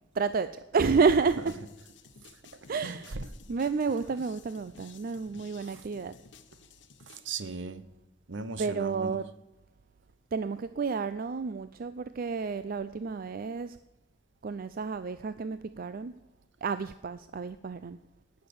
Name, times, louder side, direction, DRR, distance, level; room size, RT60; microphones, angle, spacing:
voice 1, 0.1-1.6 2.7-3.2 3.5-6.1 8.6-9.3 10.3-13.8 14.4-16.2 16.6-18.0, right 5 dB, 50° right, 12 dB, 0.4 m, -30 dB
sound 1, 1.1-7.3, left 5 dB, 65° left, 1.0 m, -55 dB
voice 2, 2.8-3.2 5.6-5.8 7.1-7.8 8.3-9.1, right 4 dB, 70° right, 13 dB, 0.9 m, -38 dB
18.0 x 6.6 x 7.0 m, 0.98 s
head